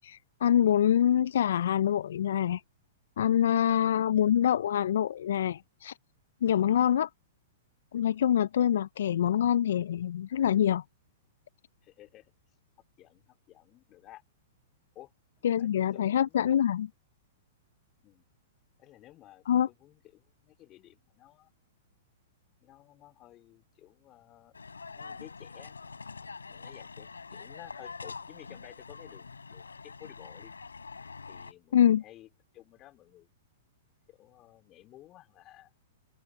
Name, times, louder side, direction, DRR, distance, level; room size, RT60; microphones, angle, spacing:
voice 1, 0.0-2.6 3.2-5.9 6.4-7.1 7.9-10.8 15.4-16.9 19.5-19.7 31.7-32.0, left 10 dB, 70° left, 0.3 m, -25 dB
voice 2, 11.8-12.3 13.0-14.2 14.9-15.1 15.4-16.6 18.0-18.3 18.8-21.5 22.6-24.5 25.0-25.8 26.5-30.5 31.3-32.3 32.5-33.3 34.1-35.7, left 15 dB, 35° left, 3.0 m, -54 dB
sound 1, 24.5-31.5, left 4 dB, 90° left, 5.1 m, -45 dB
open air
hypercardioid pair, 115°, 0 cm